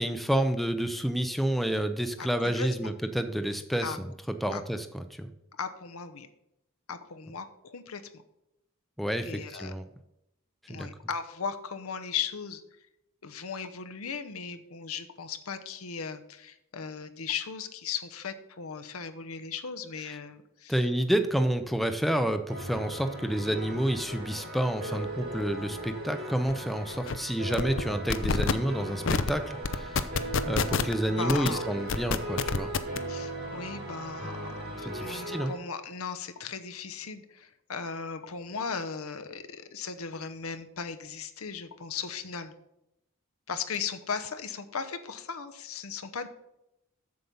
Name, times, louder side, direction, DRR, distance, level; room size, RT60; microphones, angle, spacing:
voice 1, 0.0-4.0 4.4-5.3 9.0-9.8 10.7-10.9 20.7-29.5 29.7-30.1 30.5-32.7 34.9-35.5, right 1 dB, ahead, 8 dB, 0.5 m, -29 dB
voice 2, 2.2-2.9 3.8-4.0 4.5-4.6 5.6-6.3 6.9-8.0 9.2-9.7 10.7-12.6 13.2-20.8 31.1-31.6 33.1-42.5 43.5-46.3, left 6 dB, 90° left, 10 dB, 0.8 m, -37 dB
sound 1, 22.5-35.6, right 1 dB, 75° right, 3.7 m, -38 dB
sound 2, 26.5-26.6 26.9-27.2 27.5-27.8 28.1-28.5 29.1-29.3 29.6-30.9 31.3-31.5 31.9-33.0, left 5 dB, 60° left, 0.5 m, -27 dB
7.8 x 7.2 x 5.4 m, 0.86 s
head